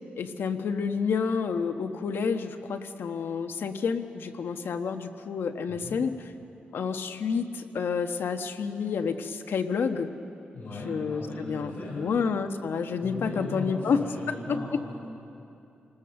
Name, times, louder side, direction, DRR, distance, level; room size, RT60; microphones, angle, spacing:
voice 1, 0.2-6.3 6.7-10.1 10.8-14.0 14.3-14.9, left 5 dB, 80° left, 7 dB, 1.2 m, -29 dB
voice 2, 10.5-12.0 13.0-14.9, left 2 dB, 45° left, -6 dB, 5.3 m, -37 dB
27.5 x 19.0 x 7.1 m, 2.7 s
wide cardioid pair, 155°, 4 cm